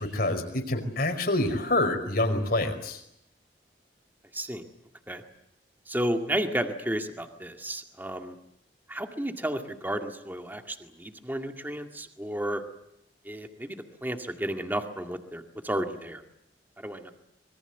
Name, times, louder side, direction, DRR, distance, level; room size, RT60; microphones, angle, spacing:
voice 1, 0.0-3.0, left 2 dB, 55° left, 6 dB, 5.0 m, -27 dB
voice 2, 4.3-4.6 5.1-5.2 5.9-8.4 8.9-12.6 13.3-16.2 16.8-17.1, right 1 dB, 10° right, 5 dB, 2.1 m, -32 dB
26.0 x 23.0 x 8.1 m, 0.79 s
head